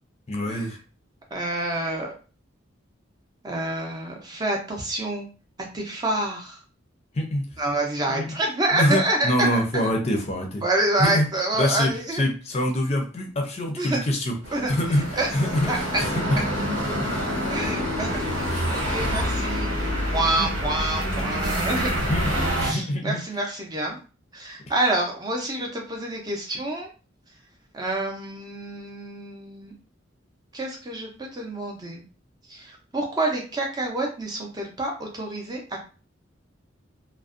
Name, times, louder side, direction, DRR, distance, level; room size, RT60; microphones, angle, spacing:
voice 1, 0.3-0.8 7.1-7.4 8.1-8.3 8.7-10.6 11.0-11.3 11.5-14.4 14.7-16.4 17.0-17.4 18.5-18.7 19.8-19.9 20.4-20.5 22.0-23.2, left 1 dB, 35° left, 1 dB, 0.5 m, -25 dB
voice 2, 1.3-2.1 3.4-5.3 5.7-6.6 7.6-9.5 9.7-9.9 10.6-12.2 13.8-14.0 14.5-14.7 15.1-15.3 15.7-16.0 17.5-19.7 20.1-22.1 22.6-24.0 24.3-26.9 27.7-29.8 30.5-32.0 32.5-35.8, right 2 dB, 20° right, 0 dB, 0.5 m, -27 dB
sound 1, 14.4-22.7, equal, 80° right, 1.1 m, -27 dB
2.5 x 2.1 x 2.4 m, 0.35 s
head